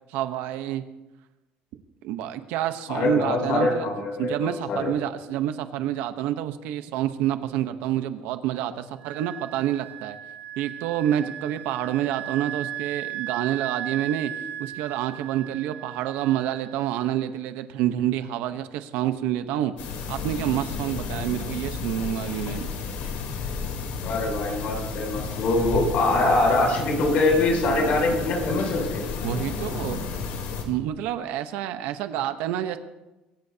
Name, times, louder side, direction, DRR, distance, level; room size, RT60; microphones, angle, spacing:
voice 1, 0.1-0.8 2.0-3.9 4.2-10.2 10.6-14.3 14.6-19.7 20.1-22.7 29.2-30.0 30.6-32.8, right 11 dB, 85° right, 9 dB, 1.0 m, -28 dB
voice 2, 2.9-4.9 24.0-29.0, left 2 dB, 60° left, 0 dB, 7.5 m, -23 dB
Wind instrument woodwind instrument, 9.0-17.3, right 12 dB, 50° right, 1.1 m, -37 dB
sound 1, 19.8-30.6, left 5 dB, 85° left, 3.5 m, -32 dB
24.0 x 17.0 x 2.8 m, 1.0 s
cardioid pair, 120°, 3 cm